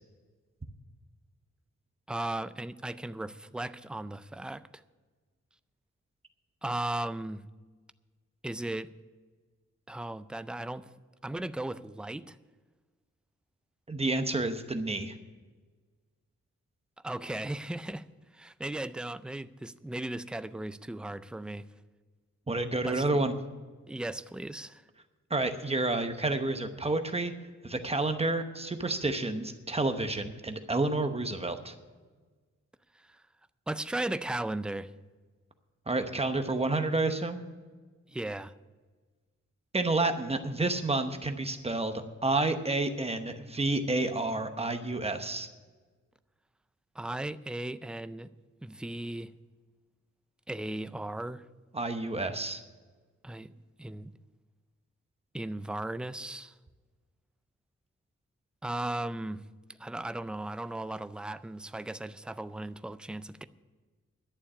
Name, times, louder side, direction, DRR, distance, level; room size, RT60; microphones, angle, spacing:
voice 1, 2.1-4.6 6.6-7.4 8.4-8.9 9.9-10.9 11.2-12.4 17.0-18.1 18.3-21.6 22.8-23.2 23.9-24.8 33.1-33.2 33.7-34.9 38.1-38.5 47.0-48.3 48.6-49.3 50.5-51.4 53.2-53.5 53.8-54.1 55.3-56.5 58.6-59.4 59.8-63.4, right 1 dB, 5° right, 0.3 m, -36 dB
voice 2, 13.9-15.1 22.5-23.3 25.3-27.3 27.6-31.7 35.9-37.4 39.7-45.5 51.7-52.6, right 2 dB, 20° right, 0.9 m, -30 dB
11.5 x 7.2 x 9.7 m
wide cardioid pair, 155°, 29 cm